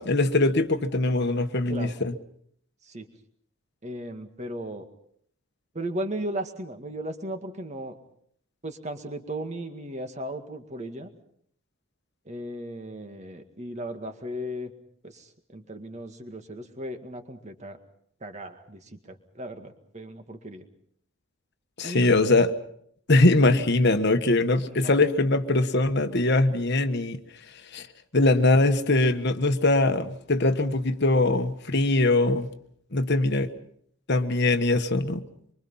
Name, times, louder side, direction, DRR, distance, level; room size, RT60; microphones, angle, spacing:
voice 1, 0.0-2.1 21.8-22.5 23.1-27.2 27.7-27.9 28.1-32.5 32.9-33.5 34.1-35.2, left 2 dB, 50° left, 1.3 m, -22 dB
voice 2, 1.7-2.0 2.8-3.1 3.8-4.9 5.7-8.0 8.6-11.1 12.3-14.7 15.0-17.8 18.2-20.7 21.8-22.0 24.7-25.0, right 1 dB, 30° right, 2.0 m, -36 dB
25.0 x 24.5 x 5.7 m
head